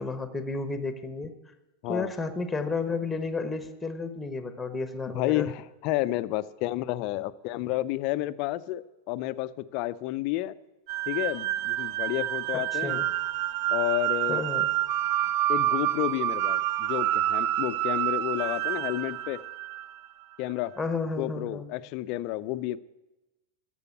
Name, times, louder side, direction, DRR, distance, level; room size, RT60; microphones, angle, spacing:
voice 1, 0.0-1.3 1.9-5.5 12.7-13.1 14.3-14.7 20.8-21.7, left 3 dB, 5° left, 9 dB, 1.1 m, -32 dB
voice 2, 5.1-10.6 11.1-13.0 13.7-14.4 15.5-19.4 20.4-20.7 21.2-22.8, left 15 dB, 45° left, 16 dB, 0.5 m, -30 dB
sound 1, 10.9-20.1, right 13 dB, 45° right, 0.4 m, -28 dB
13.5 x 7.0 x 8.2 m, 1.0 s
figure-of-eight pair, 90°, 0 cm